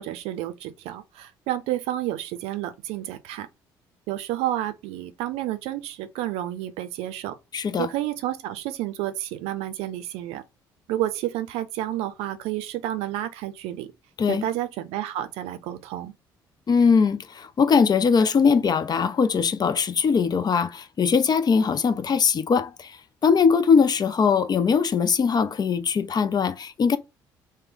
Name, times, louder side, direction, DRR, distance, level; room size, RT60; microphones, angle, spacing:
voice 1, 0.0-3.5 4.1-7.4 7.8-10.4 10.9-13.9 14.3-16.1, right 13 dB, 70° right, 0.5 m, -30 dB
voice 2, 7.5-7.9 14.2-14.5 16.7-27.0, left 6 dB, 40° left, 0.5 m, -21 dB
3.3 x 2.2 x 3.7 m
hypercardioid pair, 50°, 11 cm